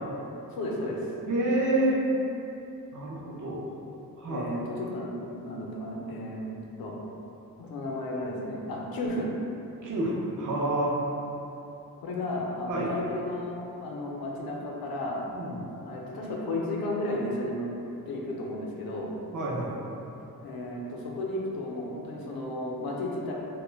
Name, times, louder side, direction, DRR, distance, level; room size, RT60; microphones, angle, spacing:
voice 1, 0.4-1.1 4.3-6.5 6.8-7.0 7.6-9.3 12.0-15.3 15.8-17.7 18.1-19.1 20.4-23.3, left 1 dB, 75° left, -2 dB, 0.5 m, -33 dB
voice 2, 1.3-2.0 2.9-3.7 4.2-4.5 9.8-11.0 12.7-12.9 15.3-15.7 19.3-19.7, right 1 dB, 60° right, -4 dB, 0.5 m, -28 dB
2.1 x 2.1 x 3.2 m, 2.9 s
cardioid pair, 95°, 36 cm